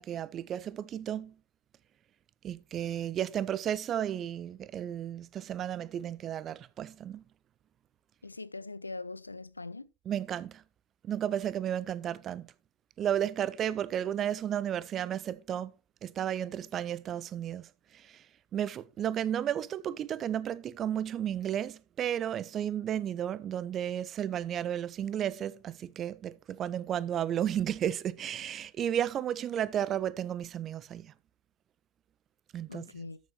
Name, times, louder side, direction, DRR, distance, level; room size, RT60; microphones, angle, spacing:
voice 1, 0.0-1.3 2.4-7.2 10.1-10.6 11.0-12.5 13.0-15.7 16.0-17.7 17.9-18.2 18.5-31.1 32.5-33.1, right 10 dB, 30° right, 0.5 m, -33 dB
voice 2, 8.2-9.9 32.7-33.2, left 3 dB, 80° left, 0.4 m, -42 dB
13.0 x 6.9 x 3.1 m
figure-of-eight pair, 90°, 0 cm